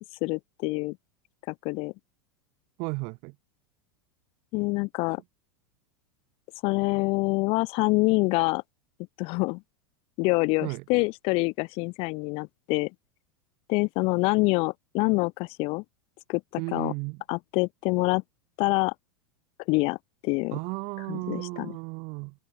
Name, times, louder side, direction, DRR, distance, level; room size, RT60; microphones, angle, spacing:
voice 1, 0.2-1.0 1.5-1.9 4.5-5.2 6.6-8.6 9.2-9.6 10.2-12.9 13.7-15.8 16.3-16.9 17.3-18.2 18.6-18.9 19.7-20.0 20.2-20.6 21.1-21.7, left 26 dB, 50° left, 2.5 m, -26 dB
voice 2, 2.8-3.3 10.6-10.8 16.6-17.2 20.5-22.3, right 31 dB, 50° right, 7.4 m, -34 dB
open air
figure-of-eight pair, 90°, 12 cm